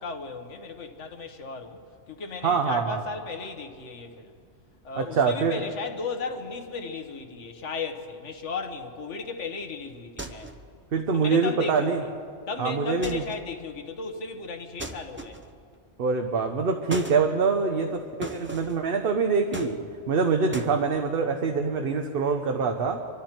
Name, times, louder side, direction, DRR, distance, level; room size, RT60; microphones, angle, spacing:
voice 1, 0.0-4.4 4.8-10.5 11.1-11.9 12.5-15.4, left 4 dB, 85° left, 1.5 m, -35 dB
voice 2, 2.4-3.0 5.0-5.6 10.9-12.0 12.6-13.2 16.0-23.2, right 5 dB, 55° right, 1.0 m, -25 dB
sound 1, 10.2-10.7 13.0-13.5 14.8-15.6 16.9-17.2 18.2-18.8 19.5-20.1 20.5-20.8, right 2 dB, 10° right, 0.7 m, -37 dB
25.0 x 13.0 x 4.4 m
omnidirectional pair, 1.2 m